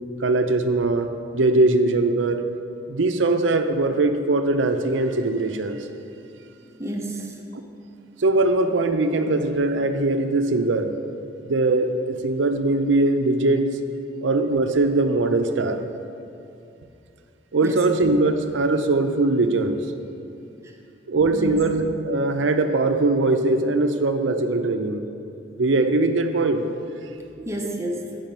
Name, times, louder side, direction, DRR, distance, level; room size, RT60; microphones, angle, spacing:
voice 1, 0.2-1.1 1.3-2.4 2.9-5.9 8.2-10.9 11.4-13.8 14.2-15.9 17.5-19.8 21.1-25.1 25.6-26.7, right 2 dB, 80° right, 7 dB, 0.6 m, -21 dB
voice 2, 6.8-7.4 17.6-17.8 20.6-20.7 21.3-21.6 27.4-28.2, right 1 dB, 15° right, 1 dB, 0.7 m, -30 dB
9.0 x 5.1 x 5.3 m, 2.6 s
head